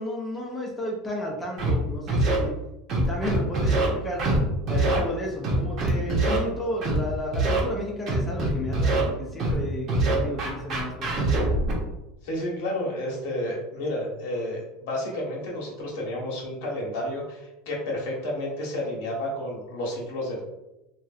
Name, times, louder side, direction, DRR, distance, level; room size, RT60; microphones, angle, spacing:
voice 1, 0.0-2.5 2.9-4.2 4.7-11.3, left 1 dB, 10° left, -3 dB, 0.6 m, -33 dB
Scratching (performance technique), 1.6-1.7 2.1-2.4 2.9-3.9 4.2-4.4 4.7-5.0 5.4-6.4 6.8-7.0 7.3-7.6 8.1-9.0 9.4-9.6 9.9-11.7, right 2 dB, 45° right, 0.9 m, -23 dB
voice 2, 12.2-20.4, left 1 dB, 75° left, -3 dB, 1.2 m, -31 dB
3.0 x 2.6 x 2.4 m, 0.94 s
supercardioid pair, 125°, 0 cm